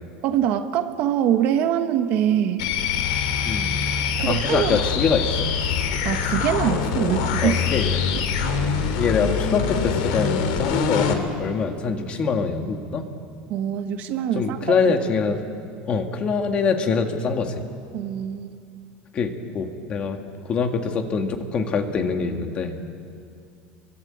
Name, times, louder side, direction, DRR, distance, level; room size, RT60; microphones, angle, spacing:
voice 1, 0.2-2.7 4.2-4.8 6.0-7.6 13.5-14.8 15.2-15.3 17.9-18.5, right 10 dB, 45° right, 8 dB, 1.4 m, -24 dB
sound 1, 2.6-11.2, left 6 dB, 80° left, 3.1 m, -24 dB
voice 2, 3.4-3.8 4.2-5.6 7.4-8.0 9.0-13.1 14.3-15.4 15.9-17.6 19.1-20.2 20.4-22.7, left 5 dB, 30° left, 5 dB, 1.8 m, -24 dB
27.0 x 23.0 x 8.7 m, 2.4 s
cardioid pair, 165°, 4 cm